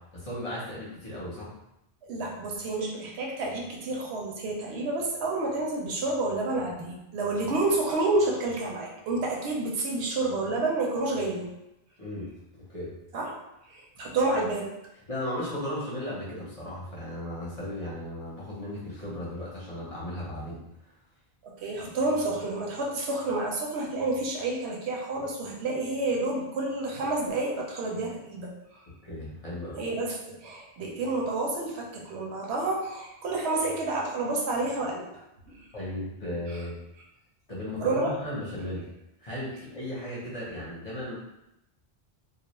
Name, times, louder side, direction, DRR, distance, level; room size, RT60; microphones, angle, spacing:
voice 1, 0.0-1.5 12.0-12.3 12.7-12.9 15.1-20.6 29.0-29.8 35.7-36.8 37.5-38.9 39.2-41.2, left 1 dB, 40° left, -7 dB, 0.7 m, -36 dB
voice 2, 2.1-11.5 13.1-13.3 13.7-14.7 21.4-28.5 29.8-35.2 35.5-35.7 36.5-36.6 37.8-38.1, right 2 dB, 85° right, -1 dB, 0.9 m, -29 dB
2.3 x 2.1 x 2.9 m, 0.87 s
omnidirectional pair, 1.1 m